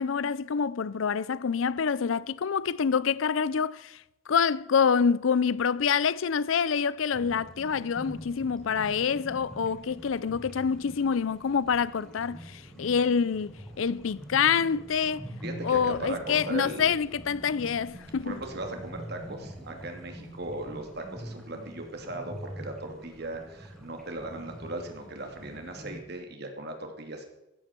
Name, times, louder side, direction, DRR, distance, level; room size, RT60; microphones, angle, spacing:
voice 1, 0.0-4.0 4.3-15.3 15.6-18.4, left 6 dB, 80° left, 0.5 m, -26 dB
sound 1, 7.1-26.0, equal, 5° left, 3.5 m, -44 dB
voice 2, 15.4-16.9 18.2-27.2, right 2 dB, 55° right, 2.6 m, -38 dB
15.0 x 14.0 x 4.5 m
head